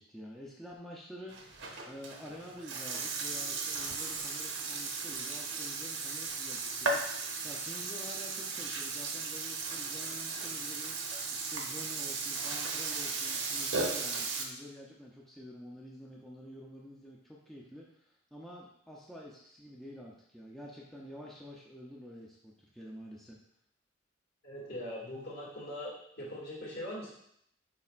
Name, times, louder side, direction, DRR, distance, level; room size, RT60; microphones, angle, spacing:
voice 1, 0.0-23.4, equal, ahead, -5 dB, 0.6 m, -49 dB
Burping eructation, 1.3-14.4, right 4 dB, 65° right, 1.0 m, -36 dB
voice 2, 24.4-27.1, left 1 dB, 55° left, -5 dB, 2.4 m, -41 dB
9.8 x 4.2 x 2.5 m, 0.72 s
head